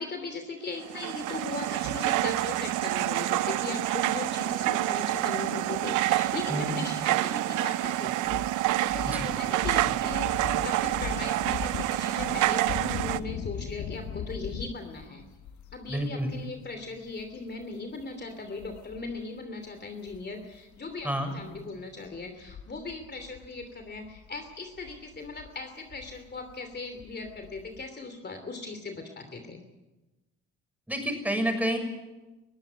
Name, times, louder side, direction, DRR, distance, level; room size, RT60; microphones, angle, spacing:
voice 1, 0.0-8.2 8.8-15.2 15.7-29.6, left 3 dB, 35° left, 6 dB, 3.0 m, -39 dB
sound 1, 0.8-13.2, right 15 dB, 90° right, 0.7 m, -28 dB
sound 2, 8.2-19.3 19.6-19.8 20.1-27.8, left 7 dB, 70° left, 1.5 m, -40 dB
voice 2, 15.9-16.3 21.0-21.3 30.9-31.8, equal, 5° right, 5 dB, 6.6 m, -29 dB
21.5 x 15.5 x 9.4 m, 1.1 s
cardioid pair, 90°, 30 cm